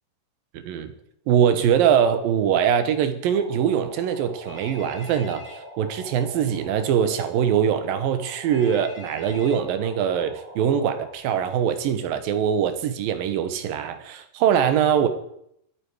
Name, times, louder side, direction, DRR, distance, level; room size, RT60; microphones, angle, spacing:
voice 1, 0.5-0.9 1.3-15.1, right 8 dB, 85° right, 10 dB, 2.9 m, -22 dB
sound 1, 3.3-11.1, equal, 15° right, 3.0 m, -42 dB
Telephone, 4.5-5.6 8.5-9.6, left 2 dB, 60° left, 6.9 m, -43 dB
24.0 x 8.5 x 4.8 m, 0.74 s
omnidirectional pair, 4.0 m